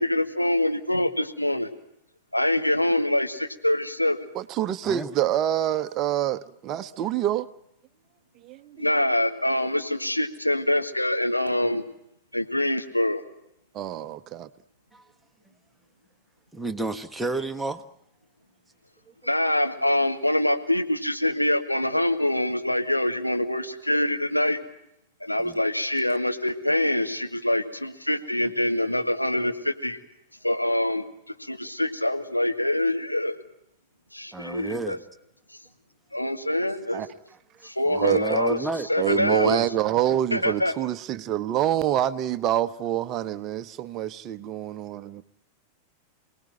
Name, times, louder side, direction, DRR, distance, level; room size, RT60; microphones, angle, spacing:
voice 1, 0.0-1.7 2.3-4.3 8.8-11.8 12.3-13.2 19.2-24.6 25.2-30.0 30.4-31.0 31.4-33.4 34.1-35.0 36.1-37.0 37.6-38.6 38.9-39.6 40.3-40.7, left 1 dB, 85° left, 1.8 m, -25 dB
voice 2, 4.3-7.5 8.4-8.9 13.7-14.5 36.9-37.1 38.0-38.4 39.0-45.2, right 11 dB, 35° right, 0.9 m, -26 dB
voice 3, 16.5-17.8 25.4-25.6 34.3-35.0 36.2-36.3 37.8-38.9 39.2-39.7, right 3 dB, 5° right, 1.5 m, -31 dB
28.0 x 19.0 x 9.2 m
figure-of-eight pair, 90°, 0 cm